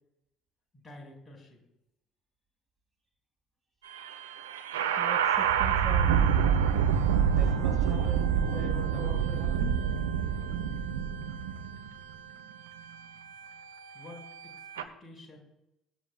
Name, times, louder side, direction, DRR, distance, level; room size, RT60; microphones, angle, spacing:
voice 1, 0.7-1.6 13.9-15.4, left 1 dB, 20° left, 0 dB, 5.5 m, -50 dB
sound 1, 3.8-14.8, right 8 dB, 75° right, 0.8 m, -28 dB
voice 2, 5.0-6.3 7.3-9.7, right 2 dB, 15° right, 0 dB, 2.5 m, -41 dB
23.0 x 11.0 x 2.4 m, 0.88 s
figure-of-eight pair, 55°, 0 cm